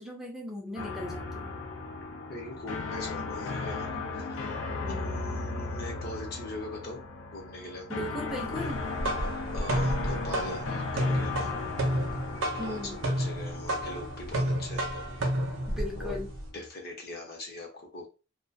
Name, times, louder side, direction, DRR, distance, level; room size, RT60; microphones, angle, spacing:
voice 1, 0.0-1.6 4.8-5.2 7.9-8.9 12.6-13.0 15.7-16.3, left 1 dB, ahead, -1 dB, 0.4 m, -38 dB
sound 1, 0.8-16.7, left 3 dB, 75° left, 0.4 m, -37 dB
voice 2, 2.3-3.9 4.3-4.6 4.9-7.0 7.3-7.9 9.5-11.5 12.5-14.8 16.0-16.2 16.5-18.1, left 2 dB, 55° left, 2 dB, 0.8 m, -41 dB
sound 2, 8.7-16.5, right 1 dB, 80° right, 0.6 m, -31 dB
2.3 x 2.2 x 2.5 m, 0.31 s
head